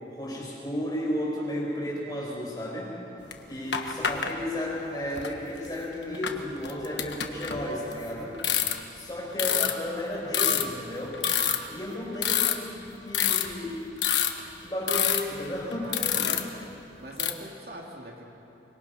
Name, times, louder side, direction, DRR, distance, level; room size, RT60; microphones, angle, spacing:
voice 1, 0.2-2.9 3.5-8.3 8.9-11.2 11.7-12.7 13.0-13.8 14.6-16.3, left 1 dB, 20° left, -4 dB, 6.4 m, -33 dB
sound 1, 3.3-3.4 3.7-4.3 5.2-5.3 6.1-8.0 8.3-9.0 9.4-9.7 10.3-10.6 11.1-11.7 12.1-12.9 13.1-13.6 14.0-14.4 14.9-15.2 15.7-16.6 17.1-17.3, left 9 dB, 90° left, 1.4 m, -26 dB
voice 2, 8.0-8.4 15.8-16.5 17.0-18.2, right 1 dB, 60° right, -1 dB, 2.8 m, -43 dB
25.0 x 22.0 x 5.7 m, 2.9 s
head